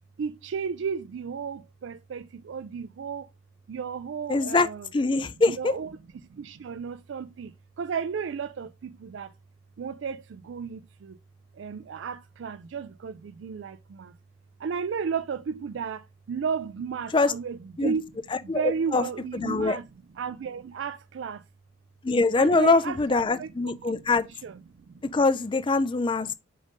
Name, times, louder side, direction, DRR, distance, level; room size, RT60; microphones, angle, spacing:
voice 1, 0.2-3.3 3.7-4.9 5.5-9.3 9.8-11.2 11.5-14.2 14.6-18.1 18.4-19.9 20.1-21.4 22.4-24.6 24.9-25.0, right 6 dB, 70° right, 0.4 m, -34 dB
voice 2, 4.3-5.8 17.1-17.3 17.8-17.9 18.5-19.0 19.3-19.8 22.0-24.3 25.0-26.3, left 3 dB, 25° left, 0.4 m, -23 dB
5.2 x 3.8 x 5.1 m
head